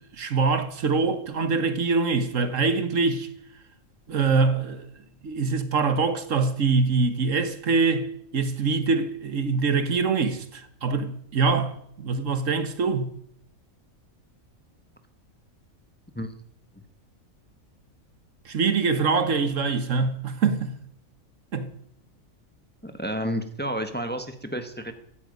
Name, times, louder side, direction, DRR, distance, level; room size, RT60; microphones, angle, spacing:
voice 1, 0.2-3.3 4.1-4.8 5.2-13.1 18.4-20.8 21.5-21.7, right 4 dB, 65° right, 1.5 m, -24 dB
voice 2, 22.8-24.9, equal, 10° left, 1.3 m, -30 dB
16.0 x 14.5 x 5.3 m
omnidirectional pair, 1.4 m